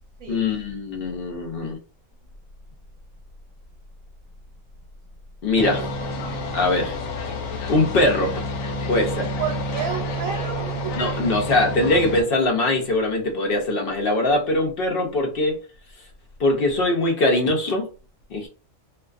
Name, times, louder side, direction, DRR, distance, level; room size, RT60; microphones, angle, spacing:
voice 1, 0.3-1.8 5.4-5.8 6.5-7.0 7.7-8.4 8.9-9.3 11.0-15.6 16.4-17.9 18.3-18.5, left 2 dB, 55° left, 2 dB, 0.7 m, -22 dB
sound 1, 5.6-12.2, left 1 dB, 80° left, 1.0 m, -29 dB
voice 2, 9.0-11.1, right 7 dB, 90° right, 2 dB, 1.0 m, -32 dB
2.3 x 2.2 x 2.4 m, 0.36 s
omnidirectional pair, 1.4 m